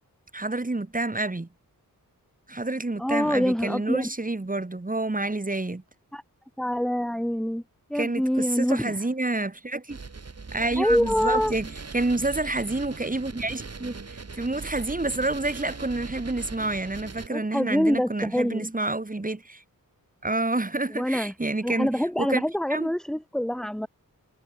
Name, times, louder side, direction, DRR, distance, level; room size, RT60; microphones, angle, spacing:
voice 1, 0.3-1.5 2.5-5.8 7.9-10.0 10.5-14.0 14.4-19.6 20.2-22.4 22.7-22.9, right 2 dB, 25° right, 4.7 m, -28 dB
voice 2, 3.0-4.1 6.1-6.2 6.6-7.6 7.9-8.9 10.8-11.5 17.3-18.7 20.9-21.3 21.6-23.9, equal, ahead, 1.9 m, -25 dB
sound 1, 9.9-17.3, right 4 dB, 45° right, 4.0 m, -40 dB
wide cardioid pair, 110°, 35 cm